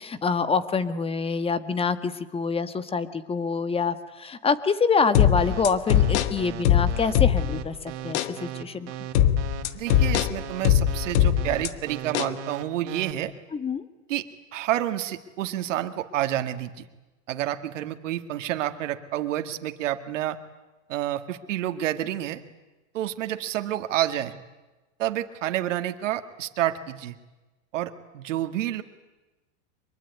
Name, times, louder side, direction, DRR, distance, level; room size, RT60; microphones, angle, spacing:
voice 1, 0.0-8.9 13.5-13.8, left 5 dB, 15° left, 13 dB, 1.5 m, -26 dB
sound 1, 5.1-7.7 8.1-8.3 9.1-11.7 12.1-12.3, left 10 dB, 60° left, 1.7 m, -21 dB
sound 2, 5.4-13.1, right 11 dB, 60° right, 3.1 m, -37 dB
voice 2, 9.7-13.3 14.1-14.2 14.5-16.9 17.3-20.4 20.9-22.4 22.9-24.3 25.0-27.2 27.7-28.8, right 13 dB, 75° right, 8 dB, 2.0 m, -29 dB
24.0 x 23.0 x 9.4 m, 1.1 s
supercardioid pair, 125°, 37 cm